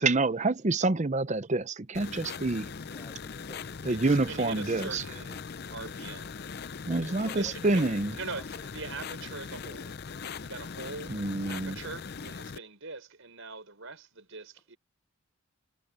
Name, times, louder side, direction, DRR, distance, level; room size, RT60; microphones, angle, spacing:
voice 1, 0.0-2.7 3.8-5.0 6.9-8.1 11.1-11.8, right 3 dB, 30° right, 0.7 m, -27 dB
sound 1, 1.9-12.6, left 5 dB, 45° left, 0.5 m, -40 dB
voice 2, 2.9-4.3 6.9-8.9, left 1 dB, 10° left, 6.2 m, -52 dB
voice 3, 3.9-5.4 5.7-6.4 7.3-7.8 8.2-10.0 10.4-11.2 11.5-14.8, right 4 dB, 65° right, 4.8 m, -42 dB
head